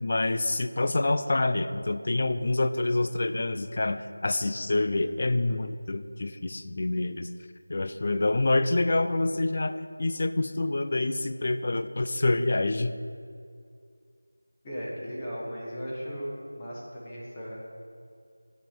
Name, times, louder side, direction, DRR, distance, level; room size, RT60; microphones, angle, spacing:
voice 1, 0.0-7.3 7.7-12.9, left 2 dB, 40° left, 11 dB, 0.3 m, -27 dB
voice 2, 14.6-17.6, equal, 15° left, -7 dB, 1.1 m, -37 dB
8.0 x 7.3 x 4.5 m, 2.3 s
figure-of-eight pair, 175°, 0 cm